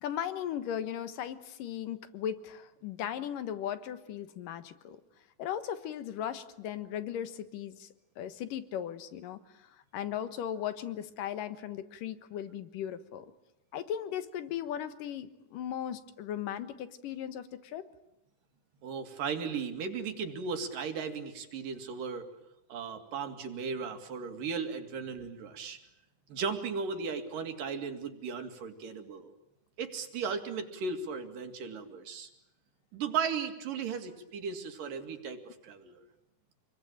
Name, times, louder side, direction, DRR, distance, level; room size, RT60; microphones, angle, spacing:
voice 1, 0.0-5.0 5.4-7.9 8.2-13.3 13.7-17.8, left 10 dB, 85° left, 11 dB, 3.0 m, -37 dB
voice 2, 18.8-22.3 22.7-25.8 26.3-29.3 29.8-32.3 32.9-36.0, right 5 dB, 80° right, 6 dB, 4.0 m, -36 dB
28.0 x 22.0 x 8.9 m, 0.85 s
omnidirectional pair, 3.8 m